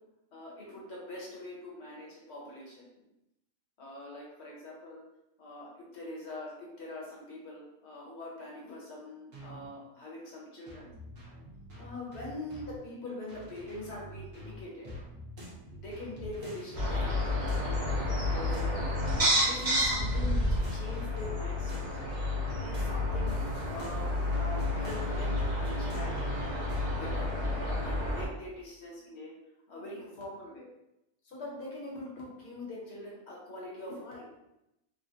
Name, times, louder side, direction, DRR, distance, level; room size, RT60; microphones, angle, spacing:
voice 1, 0.3-2.8 3.8-5.0 5.4-10.9 11.7-14.9 15.7-17.4 18.3-18.7 19.2-21.8 22.6-23.3 23.7-26.3 26.9-29.3 29.7-30.7 31.2-34.3, left 1 dB, 55° left, -4 dB, 1.1 m, -43 dB
sound 1, 9.3-9.6 10.7-12.8 13.3-18.8 19.1-21.4 21.7-26.8, left 1 dB, 65° right, 1.2 m, -46 dB
sound 2, 16.7-28.3, left 1 dB, 40° right, 0.7 m, -30 dB
3.6 x 2.1 x 2.5 m, 0.88 s
omnidirectional pair, 1.5 m